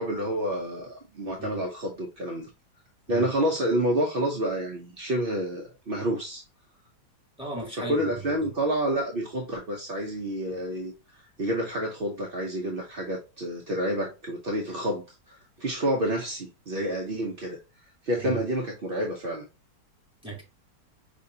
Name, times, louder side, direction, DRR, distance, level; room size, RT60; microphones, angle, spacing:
voice 1, 0.0-2.5 3.1-6.4 7.8-10.9 11.4-17.6 18.0-19.4, right 1 dB, 55° right, 0.6 m, -29 dB
voice 2, 7.4-8.5 18.2-18.4 20.2-20.4, right 2 dB, 5° right, 2.1 m, -36 dB
5.2 x 3.0 x 2.7 m
omnidirectional pair, 1.9 m